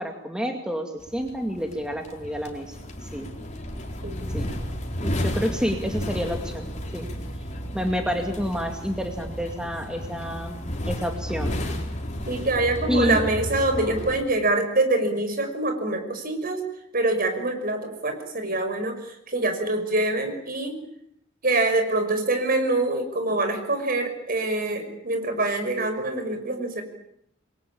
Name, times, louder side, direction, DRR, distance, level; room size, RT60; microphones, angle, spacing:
voice 1, 0.0-3.3 4.3-4.6 5.0-6.7 6.9-7.1 7.7-11.5 12.9-13.2, equal, 5° right, 3 dB, 2.4 m, -29 dB
sound 1, 1.0-14.2, equal, 40° left, 4.4 m, -32 dB
voice 2, 12.3-16.6 16.9-20.8 21.4-26.8, right 2 dB, 50° right, 7 dB, 5.8 m, -25 dB
27.5 x 22.5 x 8.8 m, 0.72 s
head